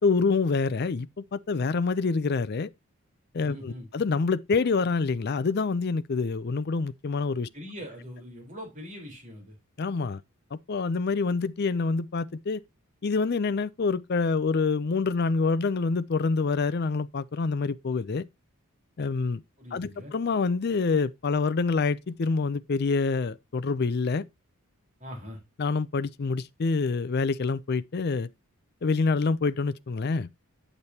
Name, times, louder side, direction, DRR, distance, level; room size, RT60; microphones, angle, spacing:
voice 1, 0.0-2.7 3.3-7.5 9.8-10.2 10.5-12.6 13.0-18.2 19.0-19.4 19.7-24.2 25.6-28.3 28.8-30.3, left 4 dB, 45° left, 0.4 m, -26 dB
voice 2, 3.5-3.9 7.5-9.5 19.6-20.1 25.0-25.4, equal, 35° right, 4.0 m, -42 dB
8.8 x 8.0 x 2.8 m
head